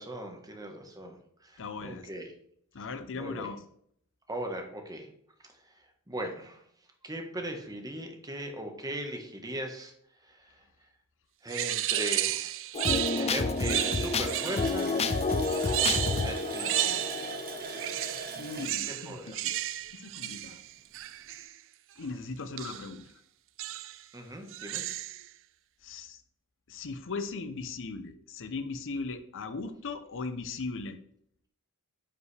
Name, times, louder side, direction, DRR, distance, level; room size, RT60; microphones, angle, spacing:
voice 1, 0.0-2.3 3.1-3.5 4.3-5.1 5.5-6.6 7.0-9.9 10.2-10.6 11.4-12.8 13.2-15.0 15.8-17.2 18.8-19.4 24.1-24.8, right 1 dB, 15° right, 4 dB, 1.3 m, -39 dB
voice 2, 1.6-2.1 2.7-3.6 17.9-19.6 19.9-20.6 22.0-23.0 24.3-24.4 25.8-26.2 26.7-31.0, left 4 dB, 60° left, 10 dB, 0.7 m, -38 dB
sound 1, 11.5-14.9 15.4-17.4 17.7-21.5 22.6-22.9 23.6-24.0 24.5-25.3, right 13 dB, 60° right, 0.4 m, -33 dB
sound 2, 12.7-18.3, left 3 dB, 30° left, 0.5 m, -30 dB
Water tap faucet, 13.6-20.1 20.4-20.5 20.9-21.1, right 4 dB, 45° right, 1.2 m, -41 dB
9.7 x 5.3 x 3.3 m, 0.67 s
head